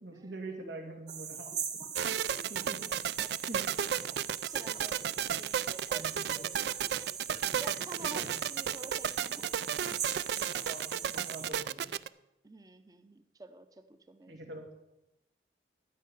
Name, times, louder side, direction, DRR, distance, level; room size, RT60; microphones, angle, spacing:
voice 1, 0.0-1.5 2.2-2.9 3.5-3.7 5.9-6.5 8.0-8.3 10.7-11.9 14.3-14.7, right 2 dB, 90° right, 1 dB, 2.7 m, -44 dB
sound 1, 1.1-11.5, right 7 dB, 40° right, 1.6 m, -41 dB
voice 2, 2.0-2.7 3.2-3.3 4.4-5.1 5.4-7.2 7.5-9.4 12.4-14.3, right 2 dB, 20° right, 9 dB, 0.6 m, -50 dB
sound 2, 2.0-12.1, right 9 dB, 70° right, 0.3 m, -33 dB
13.0 x 5.6 x 9.4 m, 0.90 s
head